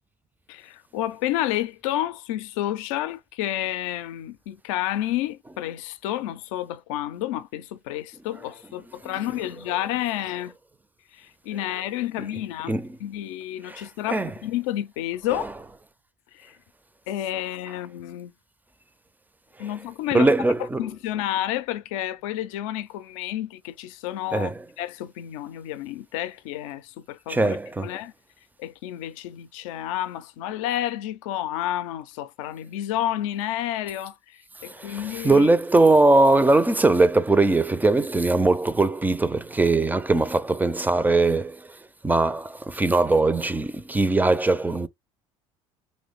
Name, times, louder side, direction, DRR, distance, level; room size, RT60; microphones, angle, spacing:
voice 1, 0.5-10.5 11.1-15.5 16.3-16.6 17.1-18.3 19.6-20.3 20.8-24.5 24.8-27.6 27.8-28.1 28.6-35.5, left 13 dB, 75° left, 0.4 m, -30 dB
voice 2, 12.7-13.0 13.7-14.3 15.3-15.5 20.1-20.8 24.3-24.6 27.3-27.9 34.6-41.8 42.0-44.9, right 2 dB, 10° right, 0.4 m, -21 dB
3.0 x 2.1 x 3.9 m
hypercardioid pair, 70°, 17 cm